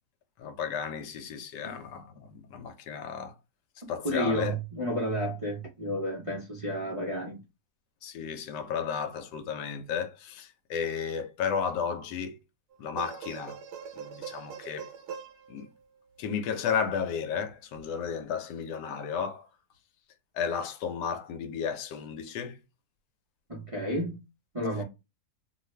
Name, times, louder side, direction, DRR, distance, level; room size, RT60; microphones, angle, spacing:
voice 1, 0.4-3.3 3.9-4.5 8.0-12.4 12.8-13.6 14.0-14.9 15.5-15.7 16.2-19.5 20.3-22.6, left 7 dB, 90° left, 1.2 m, -33 dB
voice 2, 3.8-7.4 23.5-24.2 24.5-24.8, equal, 50° right, 0.4 m, -31 dB
sound 1, 12.7-16.2 17.7-17.8, right 7 dB, 80° right, 1.1 m, -42 dB
2.7 x 2.4 x 3.1 m
omnidirectional pair, 1.8 m